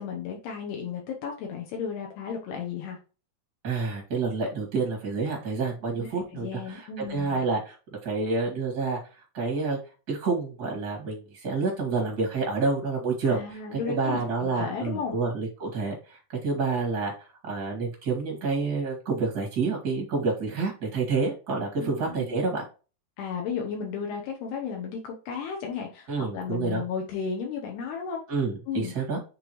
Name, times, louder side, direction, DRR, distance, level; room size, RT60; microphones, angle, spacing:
voice 1, 0.0-3.0 6.0-7.5 13.3-15.2 21.8-22.4 23.2-26.1 26.3-28.2 28.7-28.9, left 6 dB, 75° left, 0 dB, 2.9 m, -34 dB
voice 2, 3.6-9.0 9.3-9.8 10.1-17.1 17.4-22.6 26.1-26.8 28.3-29.2, right 4 dB, 40° right, -1 dB, 1.4 m, -28 dB
9.6 x 3.7 x 3.1 m, 0.33 s
omnidirectional pair, 5.2 m